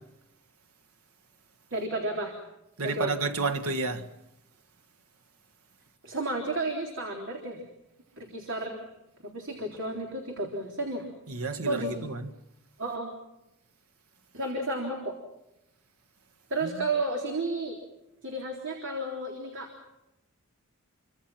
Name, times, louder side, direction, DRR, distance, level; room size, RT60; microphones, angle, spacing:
voice 1, 1.7-2.4 2.8-3.2 6.0-7.6 8.2-8.8 9.2-11.1 11.7-12.0 12.8-13.1 14.3-15.2 16.5-17.8 18.2-19.7, right 2 dB, 60° right, 3.7 m, -32 dB
voice 2, 2.8-4.1 11.3-12.2, right 3 dB, 85° right, 1.6 m, -30 dB
29.0 x 25.0 x 5.9 m
head